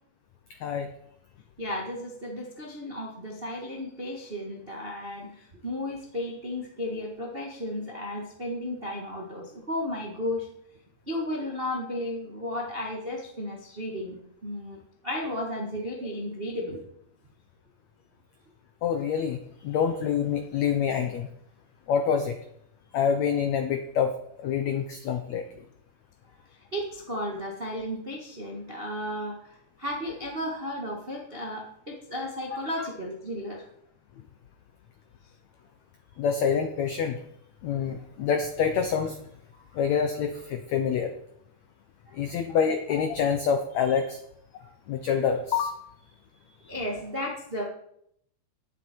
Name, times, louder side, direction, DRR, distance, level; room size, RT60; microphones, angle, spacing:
voice 1, 1.6-10.5 11.1-14.8 15.0-16.8 26.7-29.5 29.8-33.6 39.5-39.6 42.1-42.6 46.7-47.6, left 1 dB, 65° right, -1 dB, 0.5 m, -34 dB
voice 2, 18.8-21.3 21.9-22.4 22.9-24.1 24.4-25.4 32.8-32.9 36.2-37.2 37.6-39.2 39.7-41.1 42.1-44.2 44.9-45.8, left 7 dB, 85° left, 6 dB, 1.6 m, -26 dB
19.0 x 7.9 x 4.5 m, 0.72 s
omnidirectional pair, 4.4 m